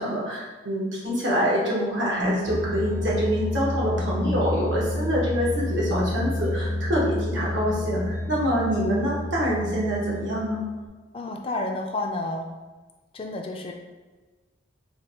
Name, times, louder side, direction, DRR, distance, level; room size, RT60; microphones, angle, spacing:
voice 1, 0.0-10.7, equal, 80° right, -5 dB, 1.2 m, -26 dB
sound 1, 2.0-10.8, left 1 dB, 40° right, 0.7 m, -29 dB
voice 2, 11.1-12.5 13.1-13.7, left 2 dB, 30° left, 2 dB, 0.3 m, -30 dB
3.4 x 2.2 x 4.1 m, 1.3 s
head